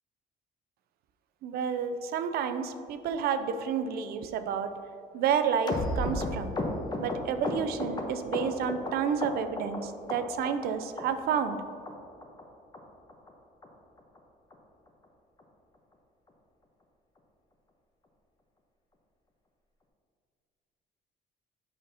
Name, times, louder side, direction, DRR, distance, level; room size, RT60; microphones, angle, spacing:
voice 1, 1.4-4.7 5.1-6.6 7.0-11.6, right 7 dB, 65° right, 9 dB, 0.4 m, -30 dB
sound 1, 5.7-8.9 9.2-9.8 10.1-10.7 11.0-11.1 11.3-11.6 11.9-12.0 12.2-12.4 12.7-12.8 13.1-13.3 13.6-13.7 14.0-14.2 14.5-14.6 14.9-15.1 15.4-15.5, left 1 dB, 25° left, 0.8 m, -33 dB
7.7 x 5.7 x 2.7 m, 2.4 s
cardioid pair, 110°, 17 cm